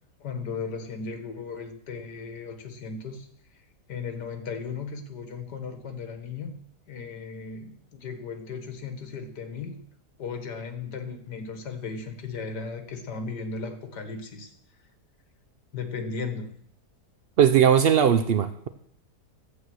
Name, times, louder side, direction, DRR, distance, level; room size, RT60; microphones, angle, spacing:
voice 1, 0.2-3.3 3.9-6.5 6.9-9.8 10.2-14.5 15.7-16.5, left 5 dB, 85° left, 7 dB, 2.1 m, -36 dB
voice 2, 17.4-18.7, right 8 dB, 80° right, 10 dB, 0.5 m, -19 dB
12.0 x 8.5 x 6.2 m, 0.65 s
omnidirectional pair, 1.8 m